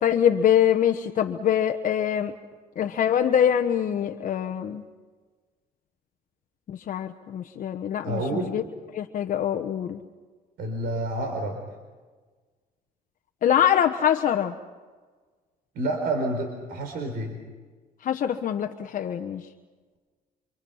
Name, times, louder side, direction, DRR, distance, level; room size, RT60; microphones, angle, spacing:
voice 1, 0.0-2.3 2.8-4.8 6.7-8.6 8.9-10.0 13.4-14.5 18.0-19.4, left 9 dB, 50° left, 5 dB, 1.1 m, -24 dB
voice 2, 8.0-8.5 10.6-11.6 15.7-17.4, right 1 dB, 65° right, 3 dB, 4.1 m, -29 dB
27.0 x 25.5 x 5.7 m, 1.4 s
cardioid pair, 110°, 17 cm